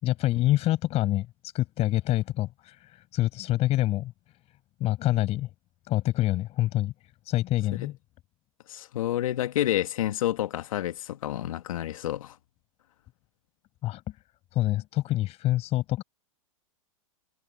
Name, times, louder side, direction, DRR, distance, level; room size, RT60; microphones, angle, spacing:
voice 1, 0.0-4.1 4.8-5.5 5.9-6.9 7.2-8.0 13.8-14.0 14.5-16.0, left 15 dB, 35° left, 6.7 m, -26 dB
voice 2, 8.7-12.4, left 13 dB, 70° left, 2.2 m, -29 dB
hypercardioid pair, 120°, 18 cm